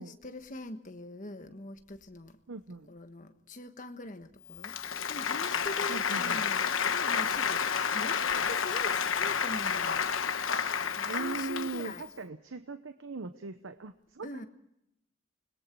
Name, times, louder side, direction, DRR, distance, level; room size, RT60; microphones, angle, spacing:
voice 1, 0.0-2.4 2.9-4.8 5.1-10.1 10.9-12.1 14.2-14.5, left 1 dB, 40° left, 7 dB, 1.4 m, -43 dB
voice 2, 2.5-2.9 5.9-6.4 11.0-14.4, right 4 dB, 85° right, 10 dB, 0.9 m, -39 dB
Applause, 4.6-12.0, left 7 dB, 85° left, 1.1 m, -30 dB
29.5 x 21.0 x 4.6 m, 0.78 s
head